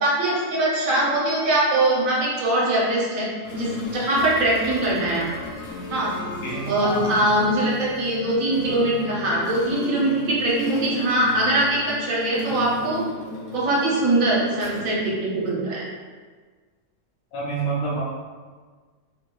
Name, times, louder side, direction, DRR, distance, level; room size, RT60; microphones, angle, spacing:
voice 1, 0.0-5.3 5.9-6.1 6.7-13.0 13.5-15.9, right 1 dB, 60° right, -5 dB, 1.0 m, -22 dB
sound 1, 3.5-15.7, left 2 dB, 65° left, 1.0 m, -35 dB
Wind instrument woodwind instrument, 4.6-11.7, right 3 dB, 35° right, 0.8 m, -39 dB
voice 2, 6.4-7.0 17.3-18.0, right 3 dB, 85° left, -6 dB, 1.3 m, -27 dB
3.7 x 2.7 x 2.2 m, 1.5 s
omnidirectional pair, 1.9 m